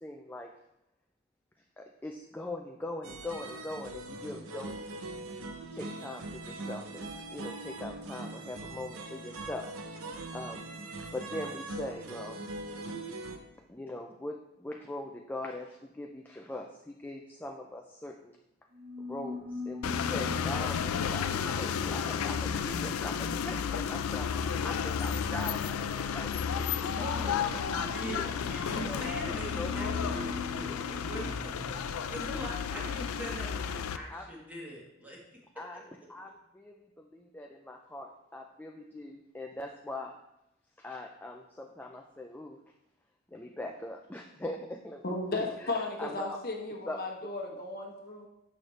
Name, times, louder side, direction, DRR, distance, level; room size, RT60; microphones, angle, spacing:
voice 1, 0.0-0.5 1.8-5.1 5.7-9.7 10.3-10.7 11.0-12.4 13.7-18.4 19.1-28.3 28.6-29.0 29.6-30.1 34.1-34.3 35.6-40.2 40.8-42.6 43.3-45.0 45.3-46.4 46.9-47.0, left 1 dB, 10° left, 2 dB, 0.3 m, -42 dB
sound 1, 3.0-13.4, right 2 dB, 80° right, 0.7 m, -41 dB
sound 2, 18.7-32.5, left 3 dB, 50° right, 1.2 m, -44 dB
sound 3, 19.8-34.0, left 7 dB, 80° left, 0.4 m, -32 dB
voice 2, 26.9-35.2 35.7-35.9, equal, 10° right, -3 dB, 1.4 m, -41 dB
voice 3, 45.0-48.3, left 2 dB, 45° left, 1 dB, 1.0 m, -35 dB
6.5 x 6.4 x 3.2 m, 0.85 s
head